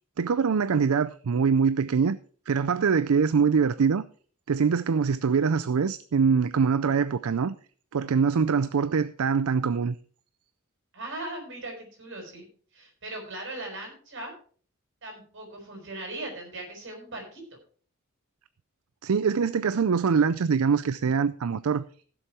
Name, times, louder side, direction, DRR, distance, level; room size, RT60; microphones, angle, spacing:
voice 1, 0.2-2.2 2.5-4.0 4.5-7.6 7.9-10.0 19.0-21.8, right 6 dB, 75° right, 0.5 m, -24 dB
voice 2, 10.9-12.4 12.7-14.3 15.0-17.4, right 2 dB, 55° right, 5.2 m, -39 dB
16.0 x 7.1 x 4.6 m
head